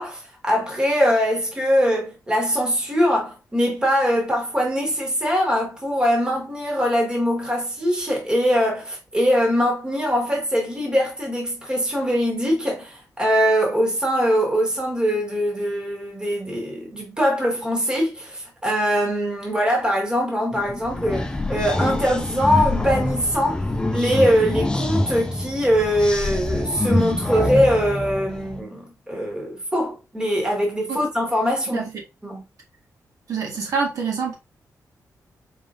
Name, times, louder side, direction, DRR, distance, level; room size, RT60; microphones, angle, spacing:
voice 1, 0.0-31.9 32.2-32.4, equal, 15° right, 1.6 m, -22 dB
sound 1, 20.5-28.6, left 2 dB, 15° left, 0.6 m, -25 dB
voice 2, 33.3-34.3, right 5 dB, 65° right, 1.4 m, -25 dB
4.7 x 3.6 x 2.5 m
wide cardioid pair, 145°, 6 cm